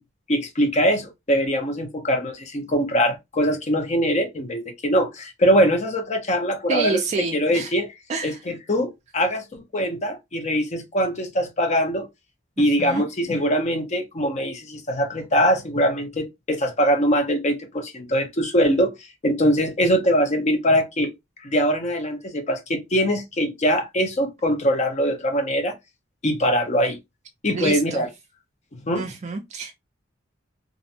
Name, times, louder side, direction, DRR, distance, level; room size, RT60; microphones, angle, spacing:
voice 1, 0.3-7.0 7.3-7.9 8.2-12.1 12.6-18.9 19.2-21.1 21.4-25.7 26.2-27.0 27.4-28.1 28.9-29.0, equal, 35° left, 0.6 m, -22 dB
voice 2, 6.7-7.7 8.1-8.4 12.6-13.0 27.5-28.1 28.9-29.7, right 4 dB, 35° right, 0.3 m, -28 dB
2.5 x 2.1 x 2.7 m
head